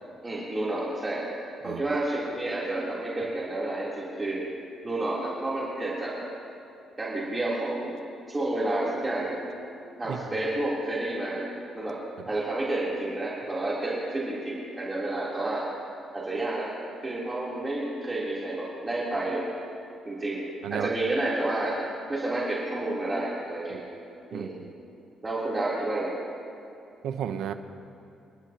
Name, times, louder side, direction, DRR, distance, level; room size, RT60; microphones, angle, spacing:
voice 1, 0.2-1.2 1.6-4.4 4.8-6.2 7.0-7.9 8.3-9.5 10.0-11.4 11.7-12.0 12.3-15.7 16.1-16.7 17.0-19.4 20.1-21.8 22.1-23.8 24.3-24.5 25.2-26.1, right 2 dB, 25° right, -7 dB, 3.5 m, -30 dB
voice 2, 24.3-24.7 27.0-27.5, right 9 dB, 80° right, 8 dB, 0.9 m, -33 dB
29.5 x 11.5 x 3.0 m, 2.8 s
cardioid pair, 90°, 0 cm